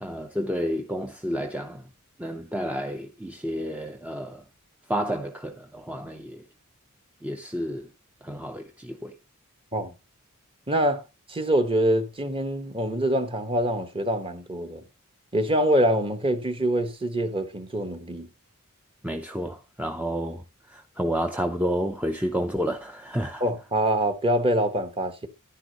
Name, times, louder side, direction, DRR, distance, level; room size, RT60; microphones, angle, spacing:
voice 1, 0.0-1.8 2.2-4.4 4.9-6.4 7.2-7.8 8.2-9.1 19.0-20.4 20.7-23.4, equal, 5° right, 0.6 m, -30 dB
voice 2, 10.7-11.0 11.3-14.8 15.3-18.3 23.4-25.3, right 1 dB, 25° right, 1.2 m, -25 dB
10.5 x 9.9 x 2.9 m
head